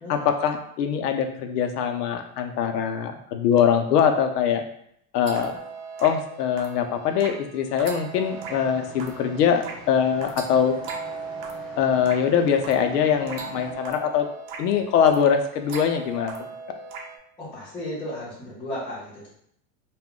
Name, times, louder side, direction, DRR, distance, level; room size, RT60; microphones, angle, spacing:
voice 1, 0.1-4.6 5.1-5.6 6.0-10.7 11.8-14.3 14.6-16.3, left 7 dB, 75° left, 6 dB, 0.6 m, -22 dB
sound 1, 5.3-17.2, right 4 dB, 70° right, 0.7 m, -39 dB
sound 2, 8.2-13.7, right 1 dB, 20° right, 1.0 m, -45 dB
voice 2, 17.4-19.3, left 1 dB, 10° left, -9 dB, 0.5 m, -34 dB
2.2 x 2.1 x 3.6 m, 0.70 s
supercardioid pair, 150°, 48 cm